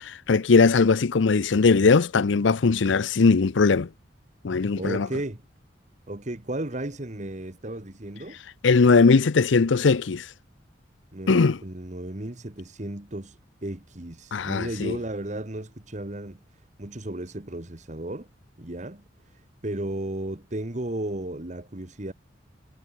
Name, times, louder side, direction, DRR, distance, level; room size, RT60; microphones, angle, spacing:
voice 1, 0.0-3.9 4.4-5.1 8.6-10.3 11.3-11.6 14.3-15.0, left 4 dB, 80° left, 0.6 m, -20 dB
voice 2, 4.8-5.4 6.1-8.4 11.1-16.4 16.8-18.3 18.6-19.0 19.6-22.1, right 1 dB, 40° right, 1.5 m, -34 dB
head